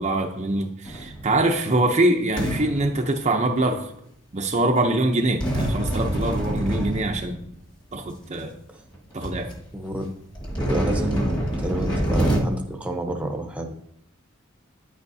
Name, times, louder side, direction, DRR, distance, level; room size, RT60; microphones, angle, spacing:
voice 1, 0.0-3.9 4.3-7.4 7.9-8.5 9.1-9.5, right 2 dB, 30° right, 3 dB, 0.6 m, -23 dB
sound 1, 0.8-1.5 2.4-3.6 5.4-7.5 8.3-8.4 8.9-9.0 9.2-9.6 10.4-12.4, right 1 dB, 20° left, 1.6 m, -26 dB
voice 2, 9.7-10.1 10.7-13.7, right 1 dB, 5° right, 3 dB, 0.8 m, -29 dB
10.0 x 8.0 x 2.7 m, 0.72 s
head